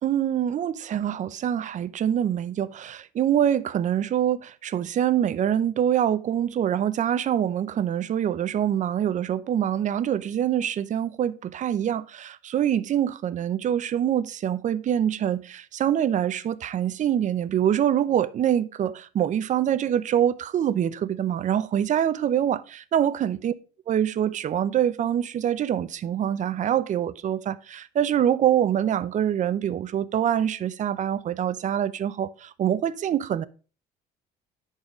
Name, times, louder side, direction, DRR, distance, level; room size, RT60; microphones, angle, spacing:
voice 1, 0.0-23.5 23.9-33.5, right 10 dB, 45° right, 0.6 m, -25 dB
10.5 x 4.2 x 4.9 m
cardioid pair, 110°, 17 cm